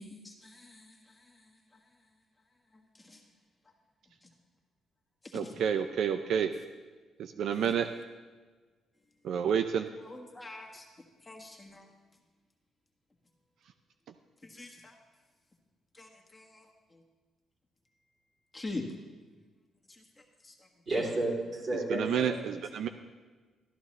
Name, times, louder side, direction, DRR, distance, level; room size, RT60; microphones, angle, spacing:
voice 1, 0.0-2.2 2.4-3.3 3.6-3.7 4.2-4.3 5.2-5.6 7.5-7.9 10.0-10.9 11.2-11.9 14.4-15.0 15.9-17.0 18.5-18.9 19.8-20.7, left 2 dB, 15° left, 0 dB, 1.5 m, -46 dB
voice 2, 5.3-6.5 7.2-7.9 9.2-9.9 21.9-22.9, right 8 dB, 75° right, 8 dB, 0.5 m, -29 dB
voice 3, 20.9-22.4, right 2 dB, 40° right, -2 dB, 3.1 m, -31 dB
13.0 x 12.0 x 3.2 m, 1.4 s
cardioid pair, 90°, 0 cm